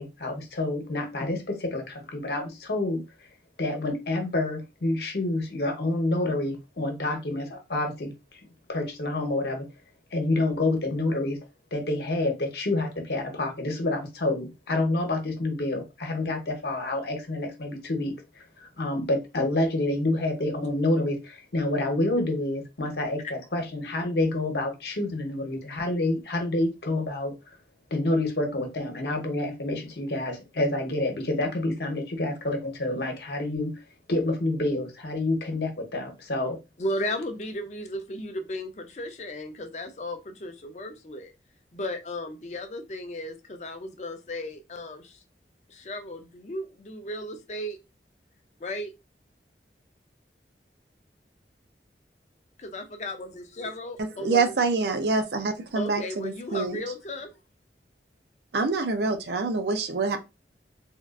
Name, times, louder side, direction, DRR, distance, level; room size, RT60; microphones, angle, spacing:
voice 1, 0.0-3.0 3.6-8.1 8.7-9.7 10.1-11.4 11.7-27.3 27.9-33.8 34.1-36.6, left 2 dB, 70° left, 0.9 m, -28 dB
voice 2, 36.8-41.3 41.7-45.2 45.7-47.8 48.6-48.9 52.6-54.5 55.7-57.3, left 1 dB, 40° left, 0.5 m, -35 dB
voice 3, 54.0-56.8 58.5-60.2, right 4 dB, 70° right, 0.5 m, -26 dB
3.5 x 2.4 x 2.3 m
head